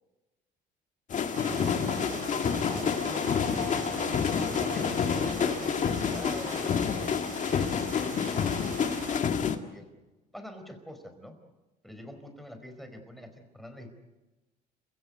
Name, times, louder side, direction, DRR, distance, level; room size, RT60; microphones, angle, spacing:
sound 1, 1.1-9.6, left 7 dB, 45° left, 1.9 m, -29 dB
sound 2, 1.3-9.2, right 3 dB, 50° right, 6.7 m, -40 dB
voice 1, 1.5-2.3 2.7-3.9 4.5-6.7 7.0-9.9 10.3-11.4 11.8-13.9, left 1 dB, ahead, 6 dB, 4.5 m, -46 dB
28.0 x 16.0 x 9.5 m, 1.1 s
cardioid pair, 110°, 17 cm